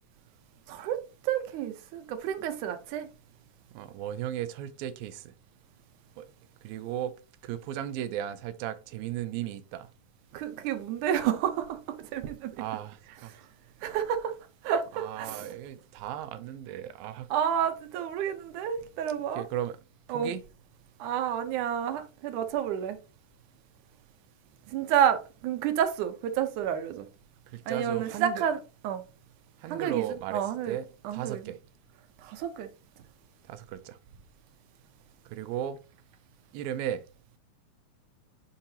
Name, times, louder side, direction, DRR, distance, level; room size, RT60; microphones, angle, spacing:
voice 1, 0.7-3.1 10.3-12.5 13.8-14.4 14.6-15.5 17.3-19.5 20.1-20.3 21.0-23.0 24.7-27.1 27.7-28.6 28.8-29.0 29.7-30.0 30.3-30.8 31.0-31.5 32.2-32.7, right 9 dB, 70° right, 2.1 m, -30 dB
voice 2, 3.7-5.3 6.2-6.3 6.6-7.1 7.4-9.9 12.6-13.4 14.9-17.3 19.4-19.8 20.1-20.4 27.5-28.4 29.6-31.6 33.5-34.0 35.3-35.8 36.5-37.0, right 11 dB, 85° right, 2.5 m, -35 dB
8.8 x 5.7 x 2.8 m
omnidirectional pair, 4.1 m